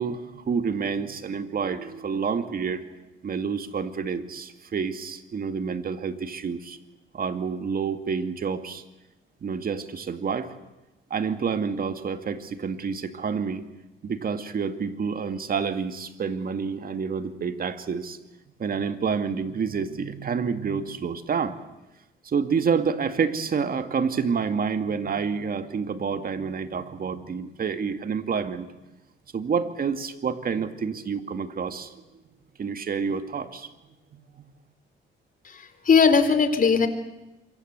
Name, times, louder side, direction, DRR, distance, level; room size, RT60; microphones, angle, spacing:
voice 1, 0.0-2.8 3.2-6.8 7.1-8.8 9.4-10.5 11.1-13.6 14.0-18.2 18.6-21.5 22.2-28.7 29.3-32.0 32.6-33.7 34.1-34.4, right 6 dB, 45° right, 9 dB, 2.2 m, -28 dB
voice 2, 35.5-36.9, left 5 dB, 45° left, 9 dB, 3.6 m, -19 dB
27.0 x 23.5 x 8.2 m, 1.0 s
cardioid pair, 90°, 20 cm